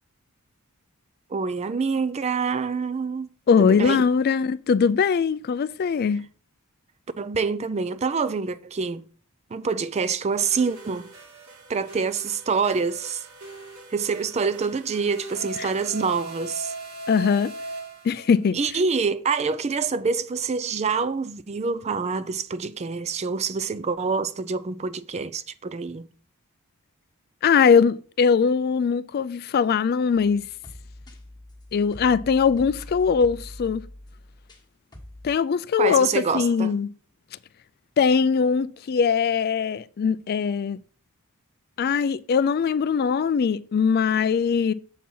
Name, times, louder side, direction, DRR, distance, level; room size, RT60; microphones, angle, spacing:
voice 1, 1.3-3.3 3.6-4.0 7.2-9.0 9.5-11.1 11.7-13.2 13.9-16.7 18.5-26.1 35.8-36.7, right 5 dB, 30° right, 0.4 m, -26 dB
voice 2, 3.5-6.2 15.6-15.7 17.1-17.5 18.0-18.6 27.4-30.4 31.7-33.8 35.2-36.9 38.0-40.8 41.8-44.7, left 6 dB, 45° left, 0.3 m, -21 dB
sound 1, 10.4-18.5, right 2 dB, 65° right, 2.1 m, -39 dB
sound 2, 30.1-34.6 34.9-35.4, left 1 dB, 20° left, 1.3 m, -43 dB
7.4 x 4.3 x 5.4 m
head